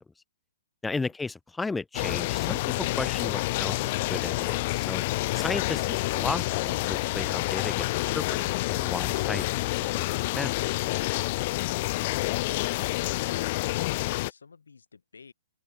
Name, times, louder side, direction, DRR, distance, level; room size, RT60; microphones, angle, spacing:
voice 1, 0.8-5.0 5.3-7.9 8.1-9.5 9.9-10.8, left 3 dB, 5° left, 3.7 m, -34 dB
sound 1, 1.9-14.3, left 20 dB, 40° left, 1.9 m, -28 dB
voice 2, 13.2-15.3, left 5 dB, 65° left, 8.0 m, -51 dB
open air
figure-of-eight pair, 115°, 0 cm